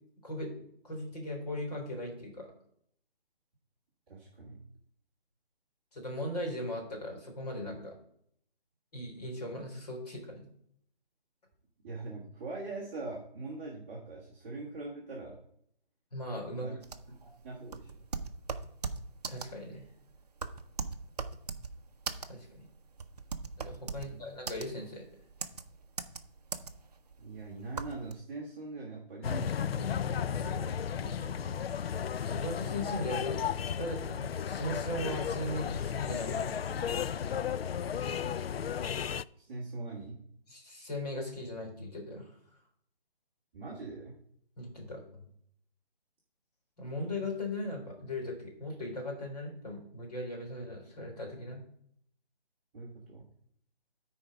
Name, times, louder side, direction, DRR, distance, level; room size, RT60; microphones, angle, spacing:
voice 1, 0.2-2.5 5.9-8.0 8.9-10.5 16.1-16.7 19.3-19.8 22.3-22.7 23.6-25.0 32.3-33.4 33.7-36.7 40.5-42.3 44.6-45.3 46.8-51.6, left 1 dB, 40° left, 0 dB, 3.7 m, -38 dB
voice 2, 4.1-4.6 11.8-15.4 16.5-16.8 17.1-17.9 23.9-24.2 27.2-31.6 39.3-40.2 43.5-44.2 52.7-53.3, right 3 dB, 10° right, -7 dB, 1.3 m, -43 dB
sound 1, 16.8-28.1, right 4 dB, 45° right, 0.7 m, -39 dB
sound 2, 29.2-39.2, left 8 dB, 85° left, 0.5 m, -34 dB
13.0 x 4.5 x 5.2 m, 0.68 s
hypercardioid pair, 170°, 29 cm